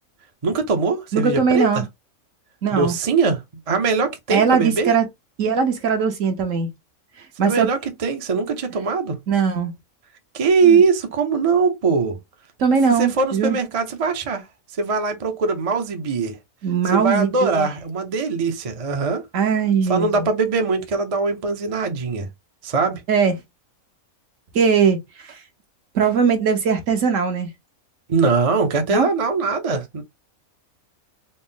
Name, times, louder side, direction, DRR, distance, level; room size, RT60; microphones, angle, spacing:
voice 1, 0.4-1.8 2.7-3.4 3.7-4.9 7.4-9.2 10.3-12.2 12.9-14.5 14.8-16.4 16.9-19.2 19.9-22.3 22.6-23.0 28.1-30.0, right 4 dB, 35° right, 0.6 m, -21 dB
voice 2, 1.1-1.8 2.6-3.0 4.3-5.0 5.4-6.7 7.4-7.7 9.3-9.7 10.6-10.8 12.6-13.6 16.6-17.7 19.3-20.3 23.1-23.3 24.5-25.4 25.9-27.5 28.9-29.1, right 6 dB, 65° right, 1.2 m, -20 dB
4.0 x 2.0 x 3.7 m
omnidirectional pair, 1.5 m